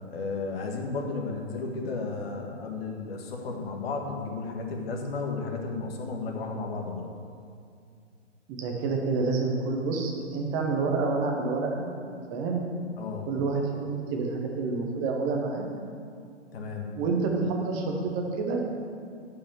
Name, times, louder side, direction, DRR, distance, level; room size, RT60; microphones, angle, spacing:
voice 1, 0.1-7.1 13.0-13.3 16.5-16.9, left 3 dB, 55° left, 2 dB, 1.8 m, -33 dB
voice 2, 8.5-11.9 12.3-12.6 13.3-15.7 17.0-18.6, right 4 dB, 10° right, 1 dB, 0.4 m, -28 dB
9.4 x 5.6 x 7.5 m, 2.3 s
hypercardioid pair, 135°, 36 cm